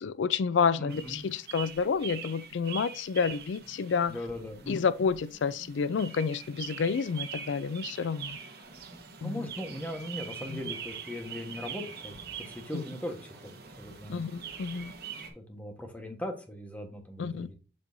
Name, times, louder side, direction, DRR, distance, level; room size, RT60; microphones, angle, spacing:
voice 1, 0.0-4.2 4.7-8.4 9.2-9.5 10.5-10.6 12.7-12.8 14.1-14.9 17.2-17.5, left 5 dB, 90° left, 0.4 m, -29 dB
voice 2, 0.8-1.2 4.1-4.8 9.2-14.3 15.3-17.6, left 1 dB, 10° left, 1.2 m, -39 dB
sound 1, 0.9-15.3, right 7 dB, 55° right, 1.4 m, -43 dB
7.3 x 6.2 x 2.6 m
head